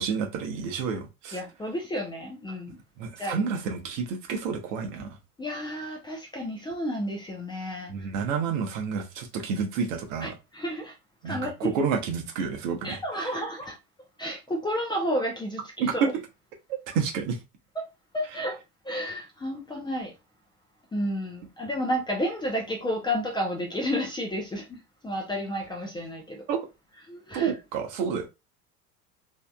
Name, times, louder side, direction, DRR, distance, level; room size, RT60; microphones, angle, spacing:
voice 1, 0.0-1.4 3.0-5.1 7.9-10.3 11.2-13.0 15.8-15.9 16.7-17.4 26.5-26.6 27.3-28.3, right 6 dB, 55° right, 1.0 m, -29 dB
voice 2, 1.3-2.8 3.2-3.4 5.4-8.1 10.2-10.9 11.2-11.7 12.8-13.8 14.2-16.1 17.8-17.9 18.1-18.6 18.8-20.1 20.9-26.5 27.1-27.5, equal, 10° left, 0.6 m, -31 dB
3.3 x 2.7 x 2.3 m
figure-of-eight pair, 75°, 46 cm